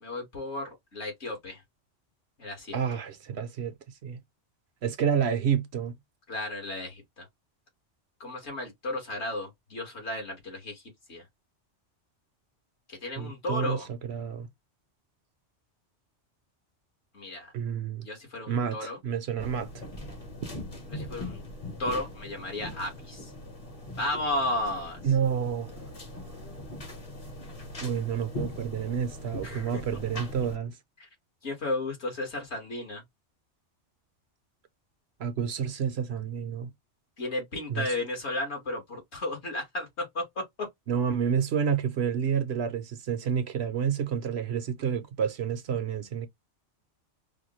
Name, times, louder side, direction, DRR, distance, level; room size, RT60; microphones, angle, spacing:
voice 1, 0.0-1.6 2.4-2.8 6.3-7.3 8.2-10.8 11.1-11.2 12.9-13.9 17.1-17.5 18.0-19.0 20.9-21.4 21.8-23.3 24.0-25.0 29.4-29.8 31.4-33.0 37.2-40.7, left 2 dB, 65° left, 2.0 m, -34 dB
voice 2, 2.7-3.7 4.0-4.2 4.8-5.9 13.2-14.5 17.5-18.1 18.5-19.7 25.0-25.7 27.8-30.7 35.2-36.7 37.7-37.9 40.9-46.3, right 7 dB, 65° right, 0.9 m, -29 dB
sound 1, 19.4-30.6, left 1 dB, 30° left, 1.0 m, -41 dB
4.9 x 2.3 x 3.0 m
omnidirectional pair, 1.2 m